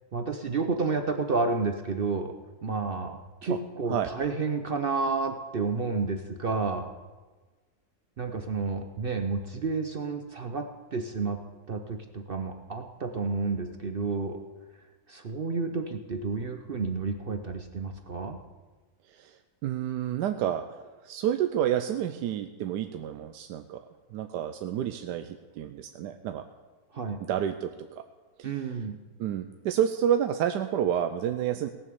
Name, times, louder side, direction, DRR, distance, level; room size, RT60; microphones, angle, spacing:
voice 1, 0.1-2.3 2.6-6.9 8.2-11.4 11.7-14.4 15.1-18.4 26.9-27.2 28.4-29.0, right 4 dB, 55° right, 7 dB, 0.6 m, -30 dB
voice 2, 19.1-23.9 24.1-26.4 27.3-28.0 28.4-28.6 29.2-31.7, right 10 dB, 85° right, 8 dB, 1.2 m, -29 dB
18.0 x 7.2 x 6.9 m, 1.3 s
omnidirectional pair, 1.8 m